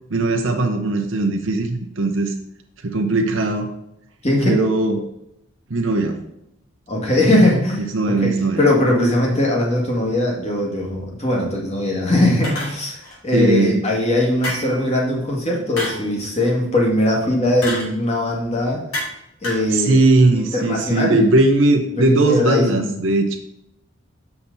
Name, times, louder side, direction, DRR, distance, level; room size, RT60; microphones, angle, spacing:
voice 1, 0.1-2.3 2.8-3.7 4.4-5.1 5.7-6.2 7.9-8.6 13.3-13.8 19.7-23.4, right 2 dB, 65° right, 3 dB, 0.7 m, -18 dB
voice 2, 4.2-4.6 6.9-8.3 8.6-18.8 19.4-20.0 20.5-21.3 22.0-22.9, left 1 dB, 30° left, -2 dB, 1.8 m, -20 dB
sound 1, 12.4-13.2 14.4-14.9 15.8-16.1 17.6-17.9 18.9-19.2 19.4-19.7, left 1 dB, 85° left, 2.6 m, -28 dB
7.3 x 5.8 x 4.0 m, 0.80 s
head